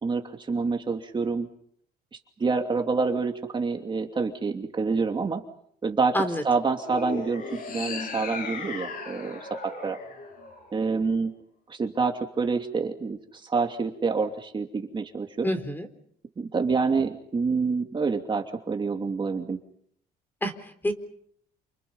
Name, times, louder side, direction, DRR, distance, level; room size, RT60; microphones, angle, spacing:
voice 1, 0.0-1.5 2.4-5.4 5.8-6.2 6.4-9.5 9.8-10.0 10.7-11.3 11.7-15.5 16.4-19.6, right 4 dB, 30° right, 4 dB, 2.7 m, -27 dB
sound 1, 6.8-11.1, left 4 dB, 55° left, 7.6 m, -37 dB
voice 2, 15.4-15.9 20.4-20.9, equal, 10° left, 9 dB, 4.0 m, -27 dB
29.5 x 28.5 x 5.6 m, 0.68 s
cardioid pair, 110°, 17 cm